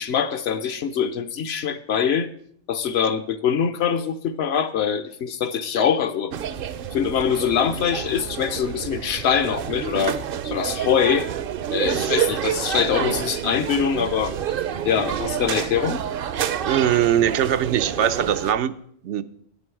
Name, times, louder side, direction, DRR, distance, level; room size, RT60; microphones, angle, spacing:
voice 1, 0.0-2.3 2.7-6.3 6.9-10.2 10.4-11.3 11.7-14.6 14.9-16.0, left 7 dB, 70° left, 10 dB, 0.9 m, -23 dB
sound 1, 6.3-18.5, right 9 dB, 60° right, 0.7 m, -28 dB
voice 2, 16.7-18.8 19.0-19.2, right 10 dB, 85° right, 12 dB, 0.9 m, -21 dB
9.8 x 9.6 x 4.6 m, 0.63 s
omnidirectional pair, 1.2 m